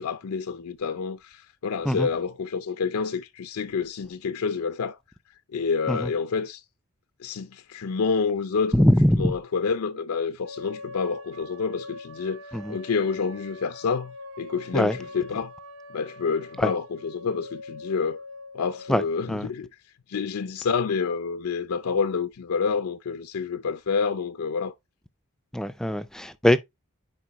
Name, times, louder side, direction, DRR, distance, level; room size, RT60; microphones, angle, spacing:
voice 1, 0.0-5.0 5.5-6.6 7.2-8.9 9.2-12.4 12.7-15.5 15.9-18.2 18.5-19.7 20.1-24.7, left 5 dB, 85° left, 0.5 m, -28 dB
voice 2, 8.7-9.3 12.5-12.7 14.7-15.0 16.6-16.7 18.9-19.0 19.3-19.5 25.5-26.6, left 1 dB, 5° left, 0.3 m, -21 dB
sound 1, 10.4-19.4, left 2 dB, 60° right, 0.9 m, -43 dB
9.8 x 4.5 x 3.0 m
head